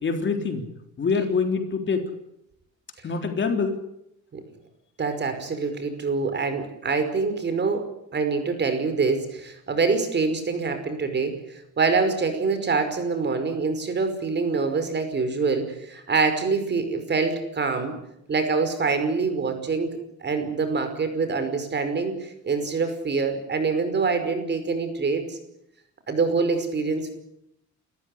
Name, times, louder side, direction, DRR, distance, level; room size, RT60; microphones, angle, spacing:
voice 1, 0.0-0.6 1.0-2.0 3.0-3.8, left 5 dB, 40° left, 5 dB, 3.6 m, -25 dB
voice 2, 5.0-18.0 18.3-19.9 20.2-25.4 26.1-27.1, right 4 dB, 35° right, 8 dB, 5.2 m, -25 dB
28.5 x 14.5 x 10.0 m, 0.81 s
cardioid pair, 125°, 30 cm